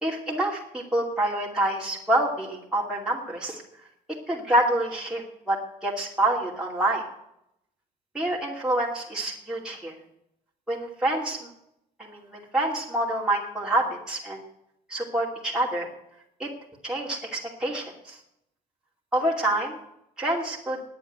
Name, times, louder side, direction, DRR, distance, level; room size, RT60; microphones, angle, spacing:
voice 1, 0.0-3.6 4.3-5.6 5.8-7.0 8.1-9.9 10.7-11.4 12.0-14.4 14.9-15.9 16.4-16.5 16.8-18.2 19.1-19.8 20.2-20.8, right 1 dB, 5° right, -4 dB, 2.5 m, -27 dB
9.7 x 8.6 x 9.7 m, 0.79 s
cardioid pair, 110°, 17 cm